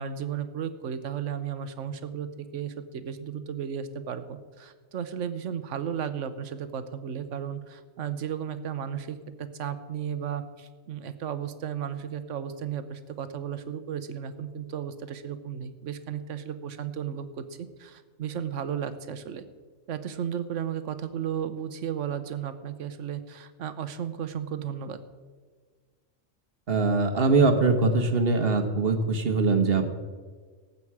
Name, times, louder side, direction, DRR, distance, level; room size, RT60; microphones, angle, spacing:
voice 1, 0.0-19.4 19.9-25.0, right 8 dB, 75° right, 11 dB, 1.2 m, -34 dB
voice 2, 26.7-29.9, right 3 dB, 50° right, 8 dB, 1.3 m, -22 dB
18.5 x 8.4 x 4.8 m, 1.5 s
omnidirectional pair, 1.3 m